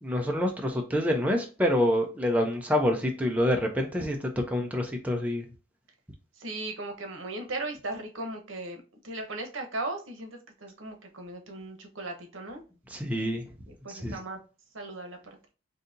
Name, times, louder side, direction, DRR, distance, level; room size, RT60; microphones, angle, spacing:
voice 1, 0.0-5.5 12.9-13.4 13.9-14.2, left 1 dB, 5° right, 2 dB, 0.4 m, -27 dB
voice 2, 6.4-12.6 13.8-14.4 14.7-15.2, right 2 dB, 80° right, 4 dB, 0.9 m, -37 dB
3.9 x 2.7 x 2.5 m, 0.34 s
head